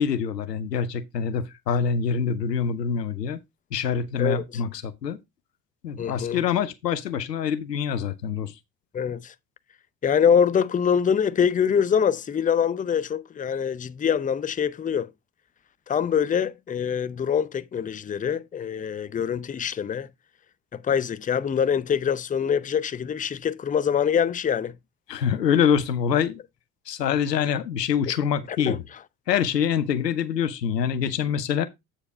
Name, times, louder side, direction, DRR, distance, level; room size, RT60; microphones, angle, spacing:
voice 1, 0.0-3.4 3.7-5.2 5.8-8.5 25.1-26.4 26.9-28.8 29.3-31.7, left 7 dB, 85° left, 0.7 m, -25 dB
voice 2, 4.2-4.6 6.0-6.4 8.9-9.3 10.0-15.1 15.9-20.1 20.7-24.8 28.5-28.8, left 7 dB, 15° left, 0.6 m, -24 dB
8.5 x 4.9 x 4.2 m
figure-of-eight pair, 55°, 48 cm